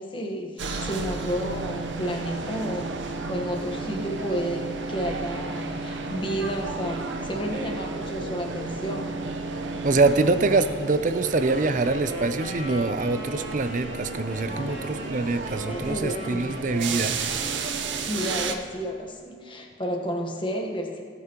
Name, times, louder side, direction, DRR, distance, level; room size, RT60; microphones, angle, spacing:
voice 1, 0.0-9.1 14.5-14.8 15.6-16.4 18.0-21.0, equal, 25° left, 1 dB, 1.2 m, -32 dB
sound 1, 0.6-18.6, right 3 dB, 80° right, 0.8 m, -33 dB
voice 2, 9.8-17.2, right 3 dB, 40° right, 11 dB, 0.5 m, -24 dB
sound 2, 11.2-18.0, equal, 60° right, 2.6 m, -39 dB
18.0 x 8.6 x 3.0 m, 2.2 s
head